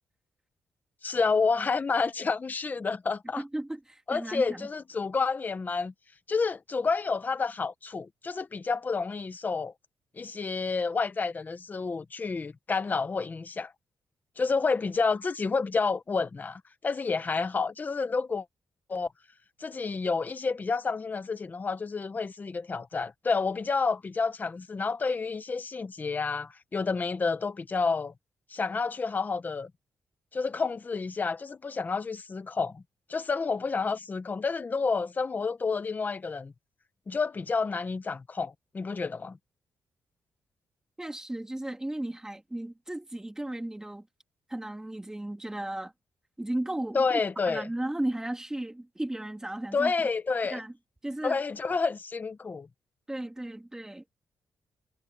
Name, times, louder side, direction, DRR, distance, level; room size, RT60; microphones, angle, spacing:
voice 1, 1.0-3.4 4.1-5.9 6.3-9.7 10.2-13.7 14.4-18.4 18.9-19.1 19.6-28.1 28.5-29.7 30.3-32.8 33.1-36.5 37.1-39.4 46.9-47.7 49.7-50.6 51.2-52.7, left 4 dB, 25° left, 0.8 m, -29 dB
voice 2, 3.4-4.7 41.0-44.1 44.5-45.9 46.4-47.2 47.5-49.9 50.5-50.7 51.0-51.4 53.1-54.0, right 1 dB, 10° right, 2.6 m, -35 dB
wide cardioid pair, 170°, 7 cm